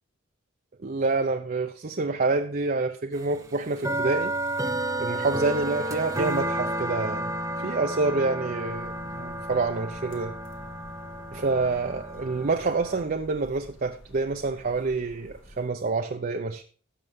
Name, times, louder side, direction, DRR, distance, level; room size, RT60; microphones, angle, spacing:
voice 1, 0.8-4.3 5.0-7.3 7.6-10.3 11.3-16.6, right 3 dB, 45° right, 0.6 m, -27 dB
sound 1, 3.2-13.0, right 1 dB, 15° right, 1.2 m, -31 dB
sound 2, 8.7-15.7, equal, 65° left, 2.1 m, -51 dB
16.0 x 6.8 x 3.6 m
head